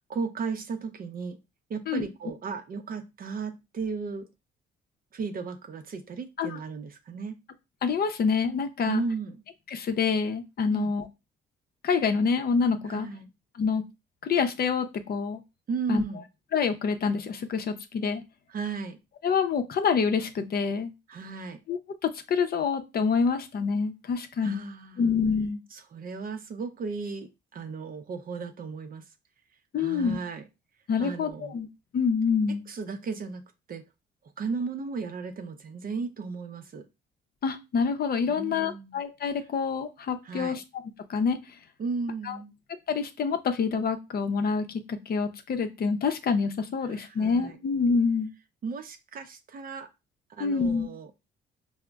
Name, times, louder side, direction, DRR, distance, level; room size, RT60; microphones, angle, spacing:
voice 1, 0.1-1.4 1.7-4.3 5.1-7.4 8.8-9.4 10.7-10.9 12.9-13.3 15.7-16.3 18.5-19.0 21.1-21.6 24.4-25.1 25.7-29.0 29.8-30.5 31.0-31.6 32.7-33.4 33.7-33.8 34.4-36.9 38.3-39.0 40.2-40.6 41.8-42.5 46.9-47.6 48.6-49.9 50.3-51.1, right 5 dB, 45° right, 8 dB, 0.6 m, -35 dB
voice 2, 7.8-9.0 9.7-11.0 11.8-13.1 13.6-13.8 14.2-15.4 15.9-16.0 16.5-18.2 19.2-20.9 21.7-24.6 25.0-25.6 29.7-30.2 30.9-31.7 31.9-32.6 37.4-40.6 41.1-41.4 42.2-42.4 42.9-48.3 50.4-50.9, left 5 dB, 50° left, 7 dB, 0.6 m, -27 dB
4.8 x 2.0 x 2.3 m, 0.25 s
cardioid pair, 90°, 20 cm